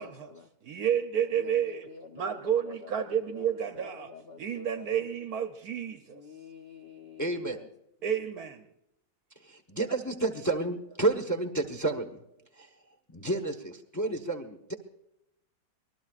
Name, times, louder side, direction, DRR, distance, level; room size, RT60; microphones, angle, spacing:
voice 1, 0.0-0.5 1.3-5.1 6.0-7.7, left 4 dB, 65° left, 4 dB, 0.5 m, -48 dB
voice 2, 0.6-1.8 2.2-4.1 4.4-6.2 8.0-8.7, right 9 dB, 65° right, 8 dB, 1.0 m, -30 dB
voice 3, 7.2-7.6 9.4-12.2 12.6-12.7 13.1-14.7, right 2 dB, 15° left, 6 dB, 0.6 m, -30 dB
25.5 x 20.0 x 2.4 m, 0.81 s
omnidirectional pair, 2.2 m